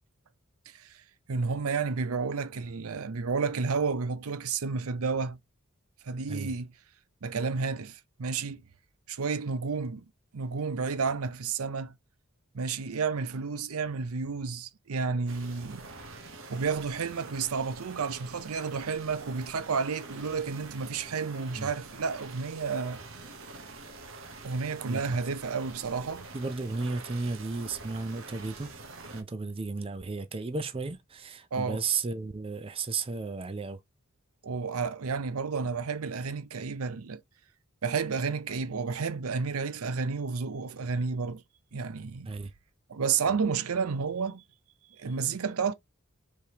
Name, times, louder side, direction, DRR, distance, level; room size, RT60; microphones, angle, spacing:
voice 1, 1.3-5.4 6.0-6.7 7.2-8.6 9.1-10.0 10.3-11.9 12.5-15.9 16.5-23.0 24.4-26.3 31.5-31.8 34.4-37.2 37.8-41.4 41.7-42.4 42.9-44.4 45.0-45.7, right 5 dB, 85° right, 0.6 m, -31 dB
sound 1, 15.3-29.2, right 3 dB, 65° right, 0.9 m, -46 dB
voice 2, 24.9-25.2 26.3-28.7 29.1-33.8 42.3-42.5, right 4 dB, 25° right, 0.5 m, -34 dB
4.7 x 3.5 x 2.9 m
head